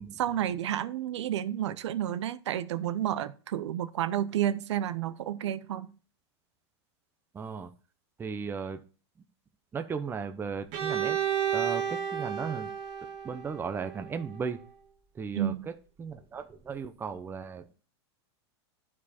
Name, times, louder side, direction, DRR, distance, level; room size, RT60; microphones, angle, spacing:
voice 1, 0.0-5.9 15.3-15.7, right 11 dB, 80° right, 0.7 m, -31 dB
voice 2, 7.3-7.7 8.2-8.8 9.7-11.2 11.5-12.7 13.2-14.6 15.1-15.7 16.0-17.9, right 6 dB, 15° right, 0.7 m, -36 dB
Bowed string instrument, 10.7-14.5, right 9 dB, 50° right, 1.9 m, -32 dB
10.5 x 4.9 x 4.2 m
supercardioid pair, 130°, 14 cm